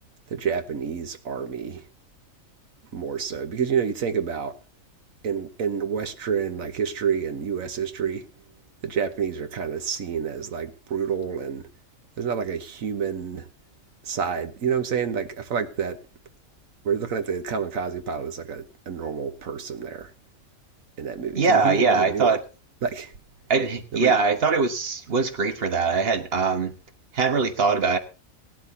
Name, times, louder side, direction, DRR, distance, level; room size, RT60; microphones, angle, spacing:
voice 1, 0.3-1.8 2.9-4.6 5.2-8.2 8.8-11.7 12.2-13.5 14.0-16.0 16.8-20.1 21.0-22.4 22.8-23.1 23.9-24.1, right 7 dB, 75° right, 1.5 m, -28 dB
voice 2, 21.3-22.4 23.5-26.7 27.1-28.0, right 4 dB, 45° right, 1.5 m, -22 dB
17.0 x 12.0 x 2.8 m
omnidirectional pair, 1.4 m